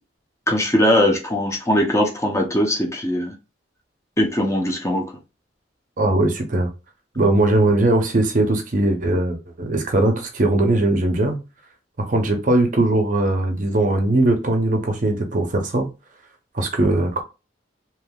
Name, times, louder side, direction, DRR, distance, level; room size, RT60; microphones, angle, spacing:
voice 1, 0.5-3.3 4.2-5.0, left 1 dB, 15° left, 0.7 m, -20 dB
voice 2, 6.0-6.7 7.2-11.4 12.0-15.9 16.5-17.2, right 2 dB, 40° right, 0.6 m, -20 dB
3.4 x 2.8 x 2.3 m
head